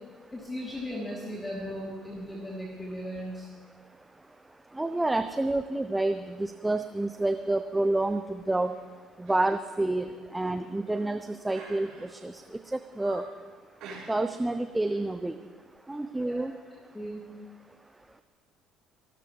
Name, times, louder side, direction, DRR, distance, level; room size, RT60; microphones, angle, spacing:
voice 1, 0.3-3.5 16.2-16.5 16.9-17.3, equal, 15° left, -4 dB, 3.0 m, -37 dB
voice 2, 4.8-8.7 9.3-10.1 10.3-11.9 12.2-12.3 12.7-13.2 14.1-15.3 15.9-16.5, right 2 dB, 10° right, 10 dB, 0.6 m, -28 dB
sound 1, 7.1-7.5 7.9-8.1 8.6-8.8 9.2-9.5 9.8-9.9 10.5-11.0 11.5-12.3 12.7-13.4 13.8-14.5 14.7-15.0, right 3 dB, 55° right, 4.3 m, -48 dB
25.5 x 12.5 x 3.2 m, 1.5 s
figure-of-eight pair, 55°, 0 cm